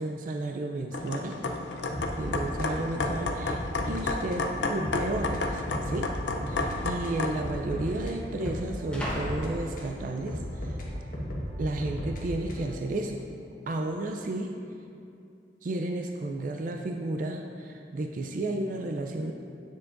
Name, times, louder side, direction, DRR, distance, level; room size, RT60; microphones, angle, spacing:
voice 1, 0.0-1.4 2.2-6.1 6.5-10.8 11.6-13.2 13.7-14.6 15.6-19.3, right 2 dB, 50° right, 3 dB, 0.4 m, -32 dB
sound 1, 0.9-7.5, left 3 dB, 85° left, 0.6 m, -32 dB
sound 2, 1.5-1.6 1.9-2.3 3.0-3.1 3.8-4.4 4.6-4.8 5.6-5.8 6.8-6.9 7.1-10.3 10.8-11.2, equal, 5° left, 1.1 m, -41 dB
sound 3, 1.9-4.1 4.3-4.5 4.8-6.8 7.0-9.9 10.3-12.8, equal, 50° left, 1.2 m, -35 dB
9.6 x 7.2 x 2.5 m, 2.5 s
head